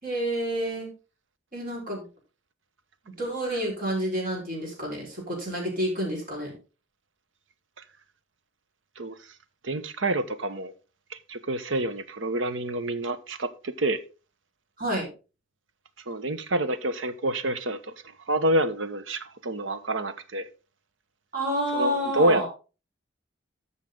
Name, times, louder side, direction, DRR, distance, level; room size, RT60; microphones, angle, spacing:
voice 1, 0.0-0.9 1.5-2.0 3.0-6.5 14.8-15.1 21.3-22.5, equal, 50° right, 5.1 m, -29 dB
voice 2, 9.0-9.3 9.6-10.7 11.1-14.0 16.1-20.5 21.7-22.5, right 1 dB, 85° right, 1.0 m, -28 dB
14.0 x 5.7 x 3.9 m
head